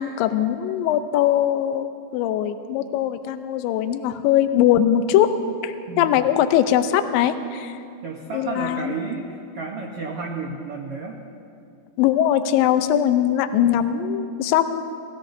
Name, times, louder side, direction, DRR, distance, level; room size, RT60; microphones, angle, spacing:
voice 1, 0.0-1.9 2.1-5.3 5.6-7.8 8.3-9.0 12.0-14.8, left 10 dB, 80° left, 9 dB, 2.3 m, -21 dB
voice 2, 5.9-6.2 8.0-11.2, right 3 dB, 80° right, -1 dB, 1.3 m, -32 dB
28.0 x 16.0 x 2.7 m, 2.4 s
omnidirectional pair, 4.3 m